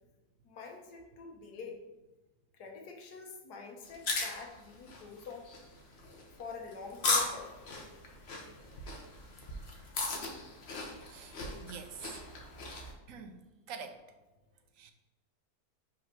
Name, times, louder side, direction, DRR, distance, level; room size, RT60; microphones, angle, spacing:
voice 1, 0.4-1.8 2.5-5.5 5.8-5.9 6.4-7.5, left 5 dB, 80° left, 2 dB, 1.6 m, -46 dB
sound 1, 3.8-12.9, left 3 dB, 45° left, 1.1 m, -37 dB
voice 2, 11.1-12.2 13.1-13.4 13.7-14.0 14.8-14.9, right 6 dB, 65° right, 7 dB, 1.0 m, -46 dB
5.2 x 3.9 x 5.7 m, 1.1 s
omnidirectional pair, 1.7 m